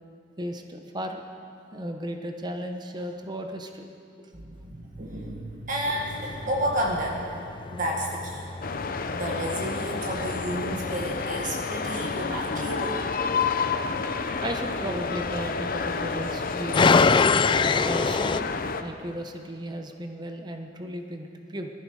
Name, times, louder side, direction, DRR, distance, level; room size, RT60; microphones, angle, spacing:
voice 1, 0.4-1.2 1.7-3.9 4.2-4.3 14.4-17.0 17.8-18.5 18.8-21.7, equal, 25° right, 4 dB, 1.0 m, -35 dB
voice 2, 4.3-7.2 7.7-8.5 9.1-13.0, equal, 45° right, -1 dB, 1.8 m, -31 dB
sound 1, 5.9-18.4, left 4 dB, 25° left, 0.3 m, -28 dB
sound 2, 8.6-18.8, left 4 dB, 50° left, 0.8 m, -30 dB
21.0 x 14.0 x 4.9 m, 2.4 s
head